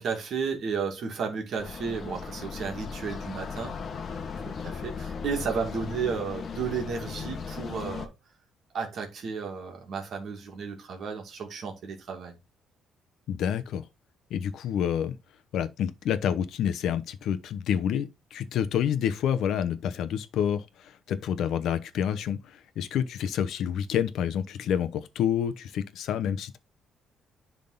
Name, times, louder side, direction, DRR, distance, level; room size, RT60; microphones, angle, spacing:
voice 1, 0.0-3.7 4.4-8.1 8.7-12.3, right 5 dB, 50° right, 2.2 m, -33 dB
sound 1, 1.6-8.1, left 5 dB, 35° left, 1.1 m, -37 dB
voice 2, 13.3-13.8 14.3-15.2 15.5-26.6, left 9 dB, 70° left, 0.8 m, -28 dB
10.5 x 3.7 x 3.9 m
cardioid pair, 145°, 0 cm